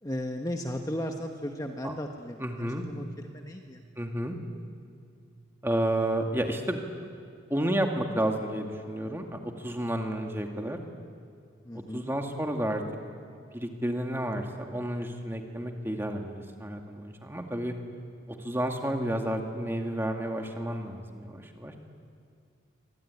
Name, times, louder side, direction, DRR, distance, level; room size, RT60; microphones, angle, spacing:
voice 1, 0.0-3.8 11.6-12.1, equal, 20° left, 3 dB, 1.3 m, -36 dB
voice 2, 2.4-2.9 4.0-4.4 5.6-6.8 7.5-10.8 11.7-12.8 13.5-17.7 18.3-21.8, right 1 dB, 10° right, 3 dB, 2.2 m, -31 dB
25.0 x 24.0 x 9.8 m, 2.3 s
head